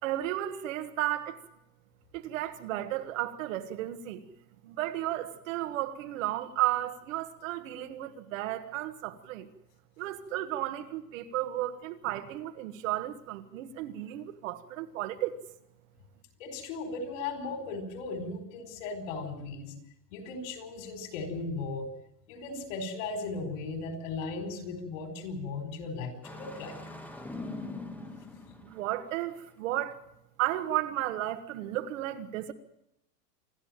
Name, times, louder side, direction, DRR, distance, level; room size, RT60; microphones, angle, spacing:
voice 1, 0.0-1.4 2.1-4.3 4.6-9.5 10.0-15.4 28.6-30.0 30.4-32.5, right 14 dB, 50° right, 1.7 m, -33 dB
voice 2, 16.4-19.7 20.1-21.9 22.3-26.8, left 3 dB, 50° left, 5.2 m, -37 dB
Engine starting, 26.2-29.2, left 2 dB, 5° left, 1.4 m, -42 dB
27.5 x 11.0 x 9.0 m
hypercardioid pair, 140°, 49 cm